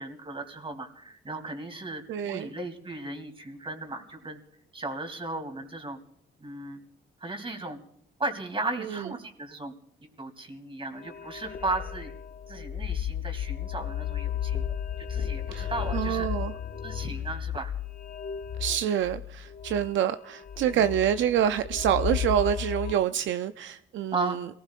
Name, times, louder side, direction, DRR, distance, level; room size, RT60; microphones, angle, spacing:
voice 1, 0.0-4.4 4.7-6.0 6.4-6.8 7.2-7.8 8.2-9.7 10.2-12.1 12.5-14.6 15.0-16.3 16.8-17.7 20.7-20.9 24.1-24.4, right 2 dB, 25° right, 2.9 m, -35 dB
voice 2, 2.1-2.5 8.8-9.1 15.5-16.5 18.6-24.5, right 9 dB, 70° right, 0.5 m, -27 dB
sound 1, 11.0-22.9, left 9 dB, 50° left, 0.7 m, -34 dB
29.0 x 19.0 x 2.5 m
cardioid pair, 90°, 20 cm